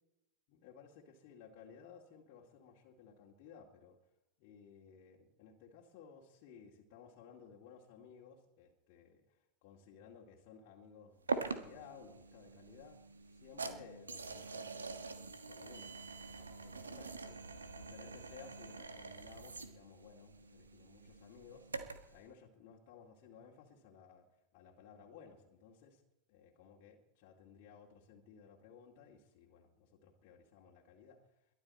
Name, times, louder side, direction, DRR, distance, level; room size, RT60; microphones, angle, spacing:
voice 1, 0.5-4.0 4.4-13.0 13.3-15.1 15.5-15.9 16.3-17.4 17.8-21.7 22.1-24.3 24.5-26.0 26.3-31.2, left 6 dB, 45° left, -2 dB, 2.2 m, -58 dB
sound 1, 11.3-22.2, right 4 dB, 75° right, 1.4 m, -45 dB
22.0 x 11.5 x 4.3 m, 0.90 s
figure-of-eight pair, 90°, 0 cm